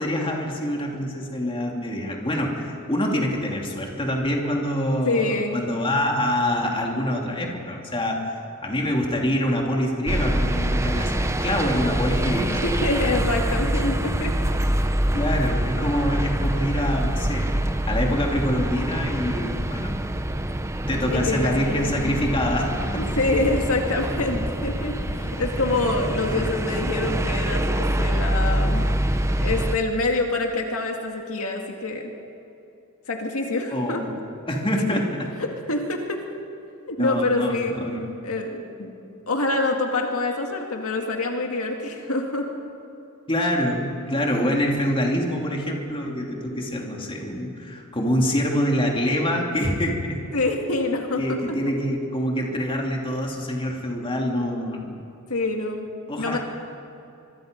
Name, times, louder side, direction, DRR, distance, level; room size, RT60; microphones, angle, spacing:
voice 1, 0.0-8.3 8.6-13.0 15.1-20.0 20.9-23.0 26.4-26.5 33.7-34.1 34.5-35.3 37.0-37.5 37.8-38.0 43.3-50.2 51.2-55.0 56.1-56.4, left 1 dB, 25° left, 0 dB, 2.9 m, -25 dB
voice 2, 5.1-5.7 12.6-14.3 21.1-22.1 22.9-28.9 29.4-32.1 33.1-34.0 35.4-36.2 36.9-37.8 38.2-38.9 39.3-42.5 50.3-51.4 55.3-55.9 56.2-56.4, left 2 dB, 70° left, 2 dB, 2.2 m, -26 dB
sound 1, 10.1-29.8, right 1 dB, 15° right, 0.9 m, -25 dB
25.0 x 23.5 x 5.3 m, 2.7 s
head